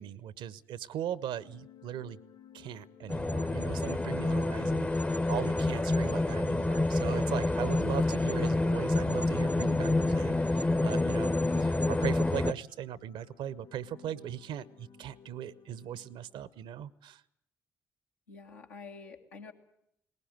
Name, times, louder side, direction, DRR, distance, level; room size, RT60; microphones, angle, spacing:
voice 1, 0.0-2.2 2.5-17.2, right 10 dB, 65° right, 20 dB, 0.8 m, -39 dB
sound 1, 1.0-16.8, left 7 dB, 60° left, 3.6 m, -58 dB
sound 2, 3.1-12.5, left 2 dB, 15° left, 0.7 m, -28 dB
voice 2, 18.3-19.5, left 4 dB, 85° left, 0 dB, 1.8 m, -48 dB
19.5 x 17.5 x 9.0 m, 0.76 s
hypercardioid pair, 40°, 9 cm